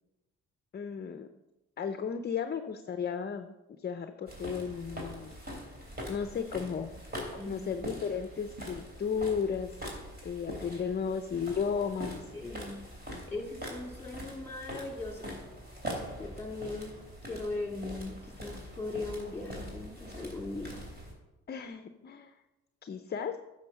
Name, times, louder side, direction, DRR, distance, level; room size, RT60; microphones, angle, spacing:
voice 1, 0.7-1.3 1.8-5.4 6.1-6.9 7.3-9.7 10.2-12.3 21.5-22.3 22.8-23.4, left 6 dB, 35° left, 8 dB, 0.6 m, -34 dB
sound 1, 4.3-21.1, equal, 35° right, 3.2 m, -43 dB
voice 2, 7.3-7.7 12.3-12.8 13.3-15.4 16.2-16.9 17.2-20.8, left 2 dB, 5° left, 1 dB, 2.5 m, -39 dB
9.6 x 6.5 x 5.4 m, 0.99 s
cardioid pair, 90°, 30 cm